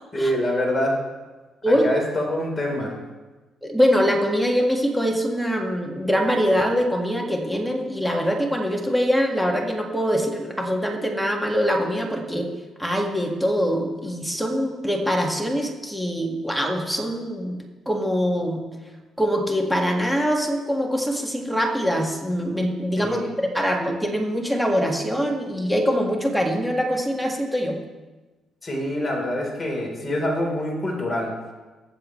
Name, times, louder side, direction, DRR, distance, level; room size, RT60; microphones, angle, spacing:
voice 1, 0.1-1.0 1.7-3.0 23.0-23.3 28.6-31.4, left 1 dB, 20° left, -1 dB, 3.9 m, -25 dB
voice 2, 3.6-12.5 12.8-17.6 17.9-18.6 19.2-27.8, equal, ahead, 1 dB, 1.9 m, -23 dB
22.5 x 7.4 x 3.3 m, 1.2 s
cardioid pair, 90°, 0 cm